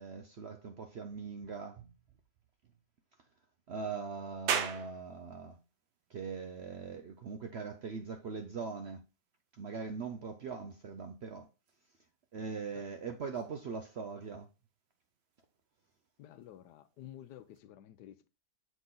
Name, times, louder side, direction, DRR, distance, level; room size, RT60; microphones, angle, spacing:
voice 1, 0.0-1.9 3.7-5.6 6.1-9.0 9.6-11.5 12.3-14.5, right 5 dB, 60° right, 0.7 m, -41 dB
sound 1, 4.5-17.6, right 7 dB, 85° right, 1.5 m, -45 dB
voice 2, 16.2-18.3, left 12 dB, 85° left, 1.3 m, -52 dB
7.0 x 4.1 x 3.8 m
omnidirectional pair, 1.8 m